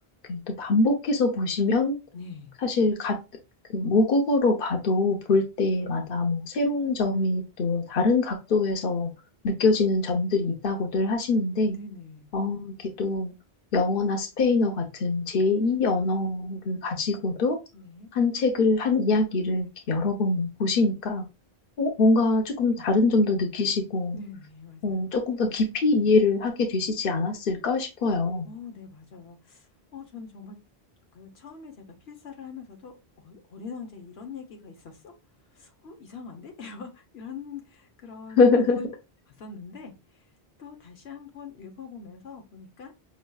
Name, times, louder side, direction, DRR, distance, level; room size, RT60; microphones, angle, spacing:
voice 1, 0.3-2.0 2.6-3.2 3.7-9.1 9.4-11.7 12.3-13.3 13.7-17.6 18.1-21.2 21.8-24.2 24.8-28.5 38.4-38.8, left 3 dB, 60° left, 3 dB, 1.0 m, -24 dB
voice 2, 2.1-2.5 5.3-5.4 11.7-12.3 17.7-18.1 22.7-22.9 24.1-25.2 28.5-29.6 29.9-30.6 31.1-32.9 33.2-35.1 35.6-38.4 38.7-38.9 39.4-39.9 40.6-43.1, left 5 dB, 85° left, 3 dB, 1.2 m, -43 dB
5.2 x 3.1 x 2.3 m, 0.26 s
omnidirectional pair, 1.0 m